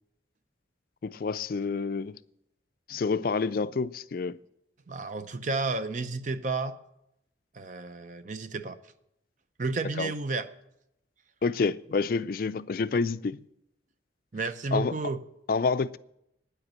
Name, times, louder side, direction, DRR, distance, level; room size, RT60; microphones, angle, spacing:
voice 1, 1.0-2.2 2.9-4.4 10.0-10.1 11.4-13.4 14.7-14.9 15.5-16.0, left 4 dB, 50° left, 0.3 m, -28 dB
voice 2, 4.9-6.8 7.5-8.8 9.6-10.5 14.3-15.2, right 3 dB, 45° right, 0.6 m, -31 dB
9.8 x 8.0 x 8.7 m
head